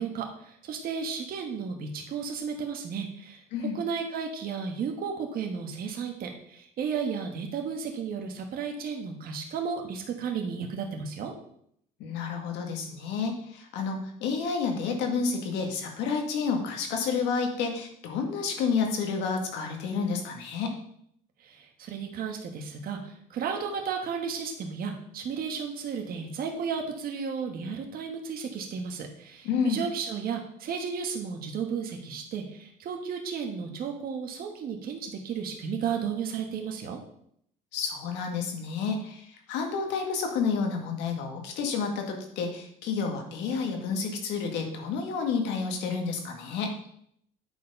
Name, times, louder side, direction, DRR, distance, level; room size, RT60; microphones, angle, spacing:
voice 1, 0.0-3.4 3.7-11.3 21.4-37.0, right 6 dB, 55° right, 2 dB, 1.4 m, -33 dB
voice 2, 12.0-20.8 29.4-29.8 37.7-46.7, left 5 dB, 80° left, 3 dB, 1.8 m, -30 dB
9.0 x 4.5 x 5.4 m, 0.69 s
cardioid pair, 105°, 18 cm